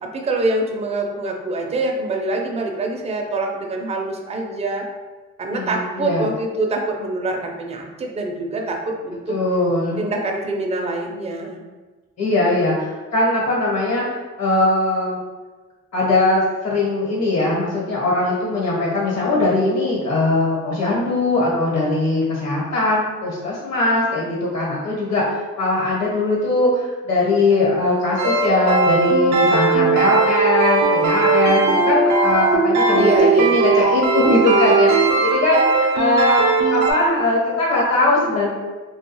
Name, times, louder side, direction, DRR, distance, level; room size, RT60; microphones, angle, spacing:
voice 1, 0.0-4.9 5.4-9.4 10.0-11.6 32.9-33.5, right 2 dB, 20° right, 1 dB, 0.4 m, -25 dB
voice 2, 5.5-6.2 9.3-10.0 12.2-14.0 14.4-15.2 15.9-33.1 33.3-36.4 36.7-38.5, left 2 dB, 60° left, -4 dB, 1.1 m, -20 dB
sound 1, 28.2-36.9, right 3 dB, 80° right, 0.5 m, -18 dB
2.3 x 2.2 x 2.9 m, 1.3 s
cardioid pair, 90°, 30 cm